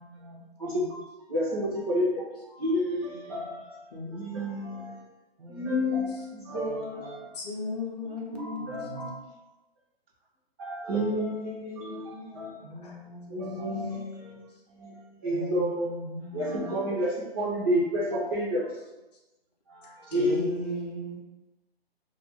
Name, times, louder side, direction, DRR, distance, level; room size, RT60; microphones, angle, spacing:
voice 1, 0.0-0.4 5.4-6.0 6.7-7.0 8.0-9.2 11.8-14.0 15.3-16.8, equal, 65° right, 0 dB, 0.7 m, -43 dB
voice 2, 0.6-5.0 5.5-7.2 8.0-9.2 10.6-12.7 13.3-14.4 14.7-16.0 16.3-18.7 19.7-20.8, equal, 20° right, -8 dB, 0.4 m, -30 dB
voice 3, 7.3-8.7 20.1-21.2, left 2 dB, 40° left, -2 dB, 0.6 m, -35 dB
2.2 x 2.1 x 2.9 m, 1.0 s
hypercardioid pair, 145°, 31 cm